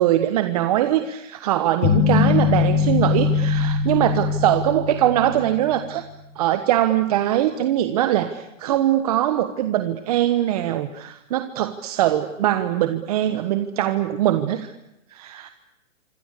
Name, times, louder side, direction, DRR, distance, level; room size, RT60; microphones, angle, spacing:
voice 1, 0.0-6.0 6.4-14.7 15.1-15.5, right 12 dB, 30° right, 9 dB, 1.3 m, -22 dB
sound 1, 1.8-6.0, left 6 dB, 25° left, 8.0 m, -21 dB
26.5 x 25.0 x 8.4 m, 0.89 s
hypercardioid pair, 160°, 39 cm